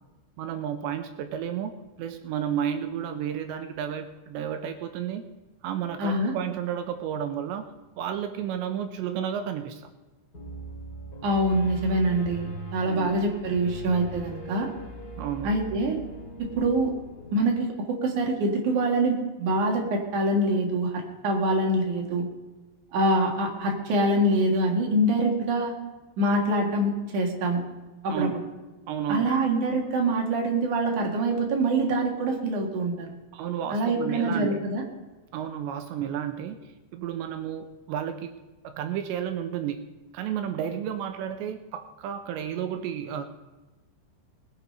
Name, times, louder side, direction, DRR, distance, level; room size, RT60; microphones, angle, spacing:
voice 1, 0.4-1.7 2.0-5.2 5.6-7.7 8.0-9.9 12.8-13.2 15.2-15.6 28.1-28.5 28.9-29.4 33.3-34.6 35.3-38.4 38.6-39.9 40.1-43.2, right 9 dB, 80° right, 8 dB, 2.9 m, -32 dB
voice 2, 6.0-6.3 11.2-14.7 15.4-16.0 16.4-16.9 17.3-22.3 22.9-25.7 26.2-27.6 28.0-28.3 29.1-33.1 33.7-34.8, right 1 dB, 55° right, 0 dB, 2.6 m, -25 dB
Piano, 10.3-17.4, right 2 dB, 25° left, 2.7 m, -40 dB
19.5 x 8.2 x 5.4 m, 1.2 s
omnidirectional pair, 5.3 m